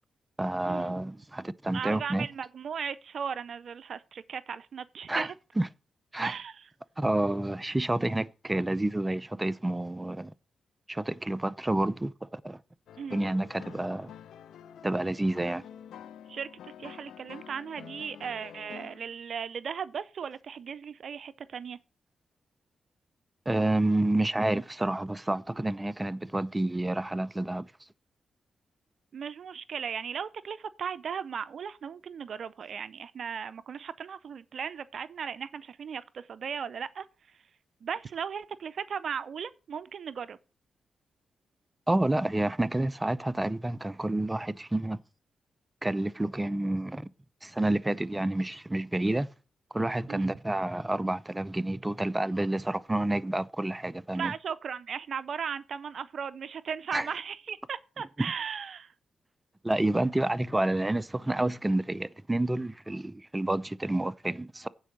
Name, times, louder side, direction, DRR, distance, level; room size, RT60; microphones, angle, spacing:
voice 1, 0.4-2.3 5.1-5.3 5.6-5.7 6.1-6.3 7.0-10.3 10.9-12.6 13.1-14.1 14.8-15.6 23.5-27.7 41.9-45.0 45.8-47.1 47.4-49.3 49.7-54.3 56.9-57.1 59.6-64.7, right 1 dB, 20° right, 0.6 m, -29 dB
voice 2, 1.7-5.3 6.2-6.6 13.0-13.2 16.3-16.5 16.8-21.8 29.1-37.1 37.8-40.4 50.1-50.3 54.1-58.9, right 7 dB, 65° right, 0.4 m, -37 dB
sound 1, 12.9-19.1, left 9 dB, 80° left, 0.6 m, -48 dB
9.1 x 4.6 x 7.1 m
supercardioid pair, 45°, 0 cm